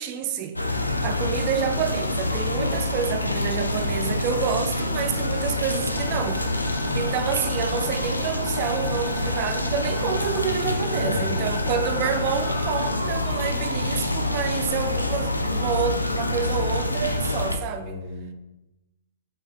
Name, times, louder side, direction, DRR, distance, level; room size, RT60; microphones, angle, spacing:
voice 1, 0.0-18.0, right 7 dB, 35° right, 0.4 m, -29 dB
sound 1, 0.6-17.6, left 2 dB, 85° left, 0.4 m, -26 dB
sound 2, 5.3-13.1, left 1 dB, 20° left, 1.0 m, -39 dB
voice 2, 10.8-12.0 17.7-18.3, left 2 dB, 65° left, 1.3 m, -34 dB
5.0 x 3.3 x 2.4 m
figure-of-eight pair, 115°, 0 cm